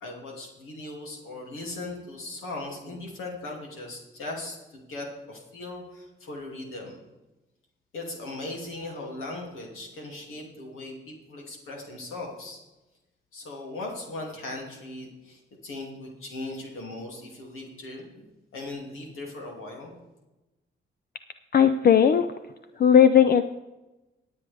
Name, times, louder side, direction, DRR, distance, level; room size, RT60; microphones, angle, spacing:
voice 1, 0.0-7.0 7.9-12.6 13.3-18.2 18.5-19.9, left 2 dB, 90° left, -1 dB, 2.7 m, -38 dB
voice 2, 21.5-22.3 22.8-23.4, left 8 dB, 50° left, 10 dB, 0.5 m, -17 dB
22.0 x 7.9 x 3.5 m, 1.0 s
cardioid pair, 65°, 21 cm